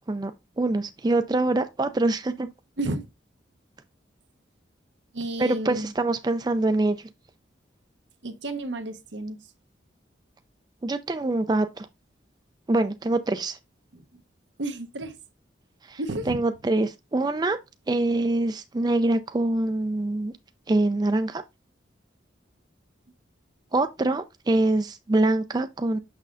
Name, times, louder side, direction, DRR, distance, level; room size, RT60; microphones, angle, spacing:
voice 1, 0.6-2.5 5.4-7.1 10.8-11.9 12.7-13.6 15.9-16.0 16.3-17.6 17.9-20.3 20.7-21.4 23.7-26.0, right 2 dB, 20° right, 0.3 m, -24 dB
voice 2, 5.1-5.9 8.2-9.4 13.9-14.0 14.6-15.2 16.0-16.4, right 2 dB, 80° right, 1.0 m, -31 dB
6.4 x 6.2 x 2.5 m
head